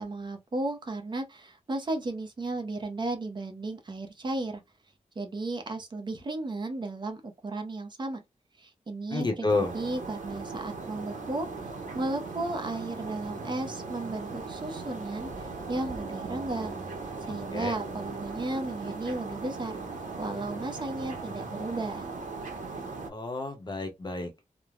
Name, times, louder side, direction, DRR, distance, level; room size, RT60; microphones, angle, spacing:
voice 1, 0.0-4.6 5.2-8.2 8.6-9.5 9.7-16.8 17.2-19.8 20.2-22.1, right 2 dB, 35° right, 0.6 m, -34 dB
voice 2, 9.1-9.7 17.3-17.8 23.1-24.3, left 2 dB, 35° left, 0.6 m, -30 dB
sound 1, 9.5-23.1, right 3 dB, 80° right, 0.8 m, -38 dB
3.1 x 2.0 x 2.3 m
wide cardioid pair, 170°, 13 cm